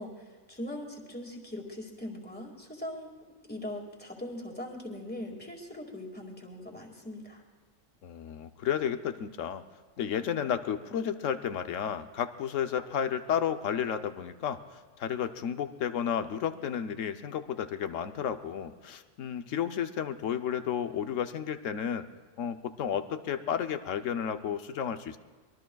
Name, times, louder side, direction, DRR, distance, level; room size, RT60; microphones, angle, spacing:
voice 1, 0.0-3.1 3.5-7.4, left 1 dB, 10° left, 0 dB, 2.0 m, -40 dB
voice 2, 8.0-9.6 10.0-22.1 22.4-25.2, left 8 dB, 90° left, 9 dB, 1.1 m, -32 dB
24.0 x 21.5 x 2.3 m, 1.5 s
omnidirectional pair, 1.3 m